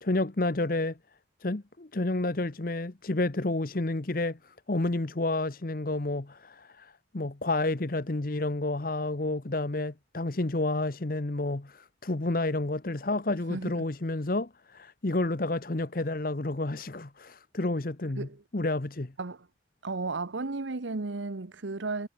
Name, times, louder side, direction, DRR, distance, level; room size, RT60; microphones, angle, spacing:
voice 1, 0.0-1.0 1.4-18.3 18.5-19.1, left 2 dB, 50° left, 1.0 m, -30 dB
voice 2, 13.5-13.8 18.2-18.4 19.2-19.5 19.8-22.1, right 3 dB, 85° right, 1.0 m, -34 dB
head